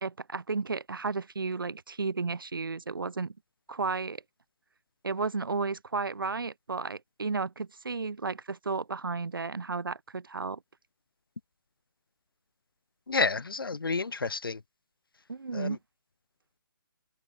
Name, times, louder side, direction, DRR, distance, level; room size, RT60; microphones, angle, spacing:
voice 1, 0.0-3.3 3.7-4.2 5.0-10.6 15.3-15.8, right 4 dB, 80° right, 1.8 m, -33 dB
voice 2, 13.1-14.6 15.5-15.8, left 4 dB, 85° left, 0.9 m, -30 dB
figure-of-eight pair, 140°, 11 cm